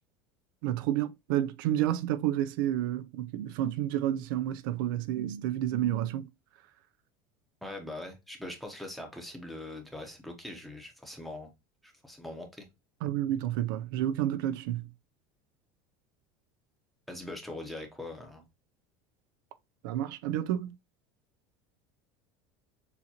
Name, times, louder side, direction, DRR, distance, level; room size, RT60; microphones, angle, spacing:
voice 1, 0.6-6.3 13.0-14.9 19.8-20.8, right 12 dB, 80° right, 0.5 m, -30 dB
voice 2, 7.6-11.5 11.8-12.7 17.1-18.4, left 1 dB, ahead, 0.8 m, -42 dB
6.8 x 2.5 x 2.9 m
cardioid pair, 175°, 11 cm